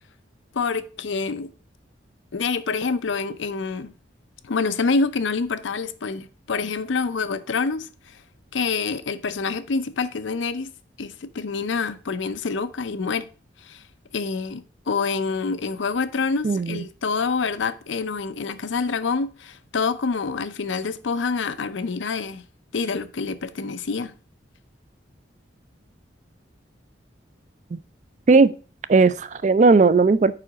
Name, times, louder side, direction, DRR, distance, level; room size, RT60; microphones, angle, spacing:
voice 1, 0.5-1.5 2.3-3.9 4.4-8.2 8.5-10.7 11.0-13.3 13.6-13.8 14.1-22.4 22.7-24.1, left 4 dB, 80° left, 0.5 m, -27 dB
voice 2, 16.4-16.8 27.7-27.8 28.3-28.5 28.9-30.3, right 4 dB, 40° right, 0.3 m, -17 dB
4.9 x 4.9 x 5.8 m
head